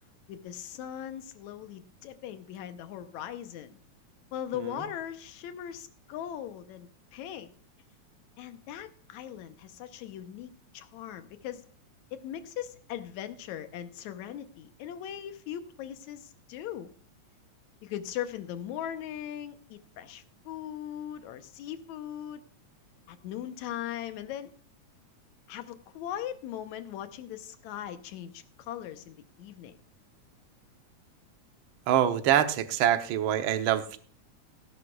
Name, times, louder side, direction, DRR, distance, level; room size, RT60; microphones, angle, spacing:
voice 1, 0.3-3.8 4.3-7.5 8.4-11.7 12.1-16.9 17.8-22.4 23.1-24.5 25.5-29.8, left 10 dB, 75° left, 10 dB, 2.2 m, -39 dB
voice 2, 31.9-34.0, right 10 dB, 70° right, 9 dB, 1.2 m, -25 dB
16.0 x 11.5 x 2.4 m, 0.43 s
omnidirectional pair, 3.4 m